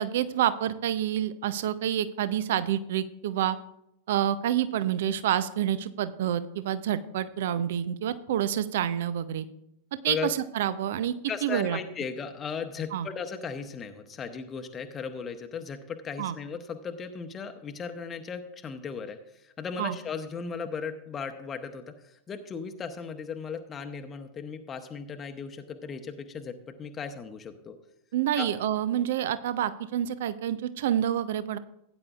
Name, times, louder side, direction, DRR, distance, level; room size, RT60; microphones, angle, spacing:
voice 1, 0.0-3.6 4.1-9.5 10.0-11.1 11.4-11.8 12.9-13.1 16.2-16.3 19.8-20.0 28.1-31.6, right 10 dB, 55° right, 14 dB, 0.6 m, -28 dB
voice 2, 11.3-27.8 28.4-28.5, left 6 dB, 25° left, 6 dB, 0.9 m, -36 dB
16.5 x 9.7 x 2.4 m, 0.80 s
figure-of-eight pair, 90°, 0 cm